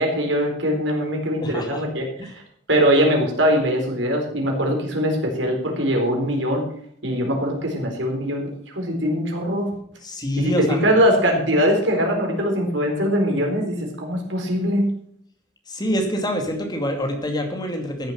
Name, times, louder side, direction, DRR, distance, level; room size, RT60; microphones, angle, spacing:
voice 1, 0.0-2.1 2.7-6.6 7.0-9.7 10.4-14.9, equal, 80° right, 2 dB, 4.1 m, -21 dB
voice 2, 1.4-1.8 2.2-2.3 10.0-10.9 15.7-18.1, equal, 25° left, 3 dB, 2.5 m, -26 dB
14.0 x 7.9 x 6.7 m, 0.65 s
head